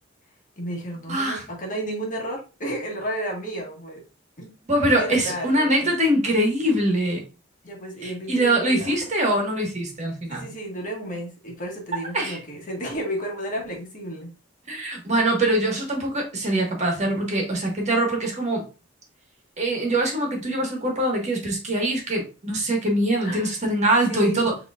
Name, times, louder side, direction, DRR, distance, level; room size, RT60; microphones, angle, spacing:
voice 1, 0.6-4.0 4.4-4.5 4.9-5.9 7.6-9.0 10.3-14.3 23.2-23.5 24.1-24.6, right 1 dB, 40° left, 0 dB, 1.5 m, -32 dB
voice 2, 1.1-1.4 4.7-7.2 8.0-10.5 12.1-12.4 14.7-18.7 19.6-24.5, right 1 dB, 35° right, 1 dB, 1.5 m, -23 dB
6.7 x 3.0 x 2.4 m, 0.32 s
head